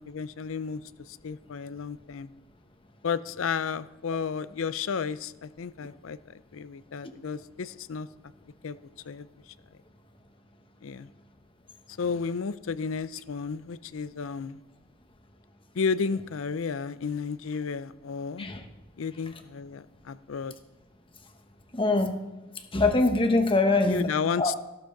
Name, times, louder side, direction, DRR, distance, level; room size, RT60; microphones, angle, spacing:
voice 1, 0.0-2.3 3.0-8.1 8.6-8.8 9.1-9.5 10.8-11.1 12.0-14.6 15.8-18.5 19.0-20.5 23.8-24.6, left 5 dB, 70° left, 15 dB, 0.5 m, -32 dB
voice 2, 21.7-22.1 22.7-24.1 24.4-24.5, left 2 dB, 25° left, 6 dB, 1.1 m, -23 dB
15.0 x 12.5 x 3.8 m, 1.0 s
head